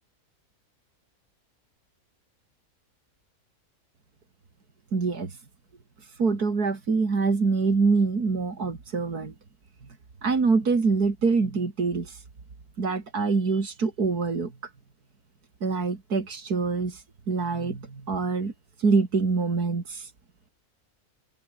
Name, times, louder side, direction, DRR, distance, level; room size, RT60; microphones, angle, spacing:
voice 1, 4.9-5.3 6.2-9.3 10.2-12.2 12.8-14.5 15.6-18.5 18.8-20.1, right 4 dB, 85° right, 3.5 m, -25 dB
omnidirectional pair, 1.6 m